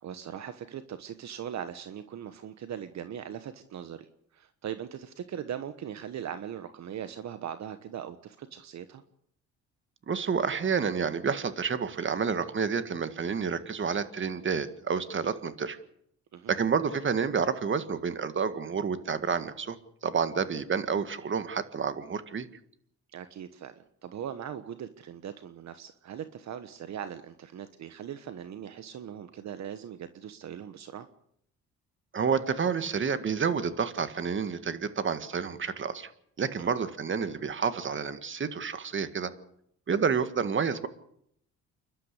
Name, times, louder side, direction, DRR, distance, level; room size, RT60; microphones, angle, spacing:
voice 1, 0.0-4.1 4.3-9.0 16.3-16.5 23.1-31.1 36.6-36.8, right 9 dB, 65° right, 10 dB, 1.3 m, -40 dB
voice 2, 10.1-15.8 16.5-22.5 32.1-36.1 36.4-39.3 39.9-40.9, right 6 dB, 40° right, 11 dB, 1.9 m, -29 dB
29.0 x 12.0 x 8.2 m, 0.71 s
cardioid pair, 90°, 30 cm